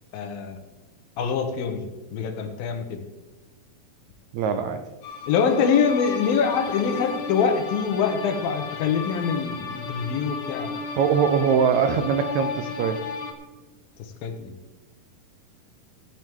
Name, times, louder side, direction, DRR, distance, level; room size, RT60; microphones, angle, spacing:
voice 1, 0.1-0.6 1.2-3.0 5.3-10.8 14.2-14.5, left 6 dB, 80° left, 6 dB, 2.9 m, -24 dB
voice 2, 4.3-4.8 10.9-13.0, right 7 dB, 85° right, 8 dB, 1.6 m, -22 dB
sound 1, 5.0-13.3, left 5 dB, 60° left, 2.1 m, -34 dB
14.5 x 10.5 x 3.6 m, 1.2 s
omnidirectional pair, 4.1 m